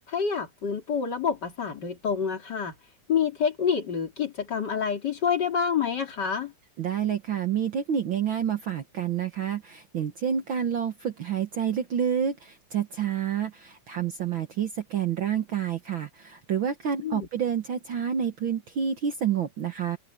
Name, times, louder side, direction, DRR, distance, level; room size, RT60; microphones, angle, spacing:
voice 1, 0.1-2.7 3.1-6.5 17.0-17.3, left 7 dB, 35° left, 2.9 m, -27 dB
voice 2, 6.8-20.0, right 8 dB, 55° right, 1.5 m, -28 dB
open air
omnidirectional pair, 3.5 m